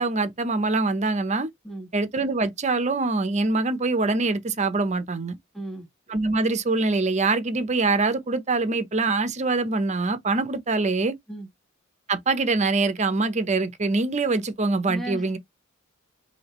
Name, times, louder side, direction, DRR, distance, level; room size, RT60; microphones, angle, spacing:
voice 1, 0.0-1.5 1.9-5.4 6.1-11.1 12.1-15.4, right 3 dB, 35° right, 0.8 m, -24 dB
voice 2, 5.5-5.9 11.3-11.5 14.9-15.4, right 1 dB, ahead, 1.5 m, -35 dB
4.8 x 2.8 x 3.0 m
head